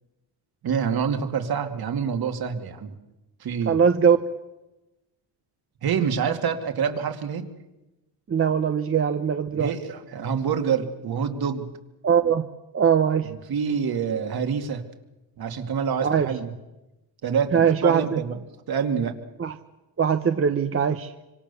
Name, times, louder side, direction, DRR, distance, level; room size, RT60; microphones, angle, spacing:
voice 1, 0.6-2.9 3.4-3.8 5.8-7.5 9.5-11.7 13.3-14.8 15.4-16.5 17.2-18.4 18.7-19.2, right 6 dB, 55° right, 5 dB, 2.6 m, -26 dB
voice 2, 3.7-4.2 8.3-9.7 12.0-12.5 12.7-13.3 16.0-16.3 17.5-18.2 19.4-19.5 20.0-21.1, right 7 dB, 30° right, 8 dB, 1.0 m, -21 dB
26.0 x 26.0 x 7.0 m, 1.0 s
cardioid pair, 140°, 43 cm